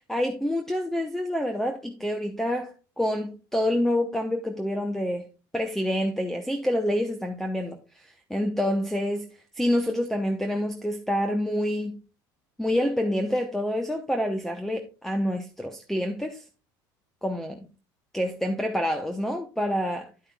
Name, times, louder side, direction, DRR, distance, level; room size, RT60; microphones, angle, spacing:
voice 1, 0.1-5.2 5.5-9.2 9.6-12.0 12.6-16.4 17.2-17.7 18.1-20.1, equal, 5° left, 0.9 m, -27 dB
9.4 x 8.5 x 2.3 m
supercardioid pair, 110°, 10 cm